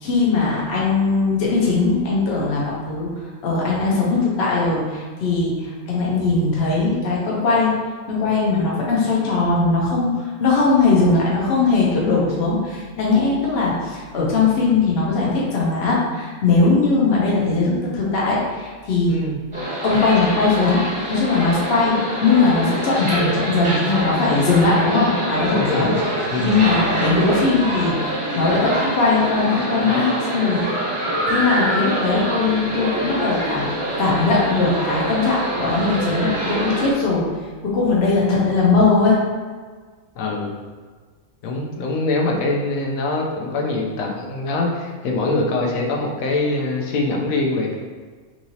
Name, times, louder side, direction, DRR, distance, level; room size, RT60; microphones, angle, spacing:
voice 1, 0.0-3.1 3.4-7.7 8.1-19.1 19.8-20.8 21.1-25.9 26.4-30.9 31.3-33.7 34.0-37.3 37.6-39.2 42.3-42.4, left 3 dB, 55° left, -5 dB, 0.9 m, -19 dB
voice 2, 19.1-19.4 25.5-25.9 26.3-26.6 40.2-40.5 41.4-47.8, left 2 dB, 80° left, 0 dB, 1.0 m, -23 dB
sound 1, 19.5-36.9, right 1 dB, 25° right, 0.9 m, -25 dB
3.7 x 3.0 x 2.7 m, 1.5 s
omnidirectional pair, 1.5 m